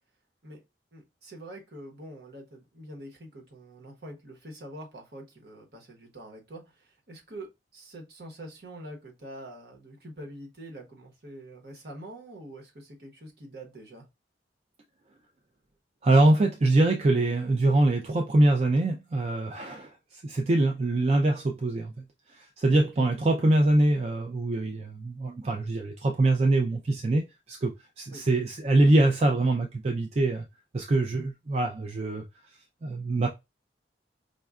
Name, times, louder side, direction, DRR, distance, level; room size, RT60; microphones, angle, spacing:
voice 1, 0.9-14.0 22.8-23.1 28.1-28.2 31.1-31.3, right 1 dB, 60° right, 1.1 m, -45 dB
voice 2, 16.0-21.9 22.3-30.4 30.7-32.2 32.8-33.3, right 2 dB, 35° right, 0.4 m, -24 dB
5.1 x 2.2 x 2.4 m
head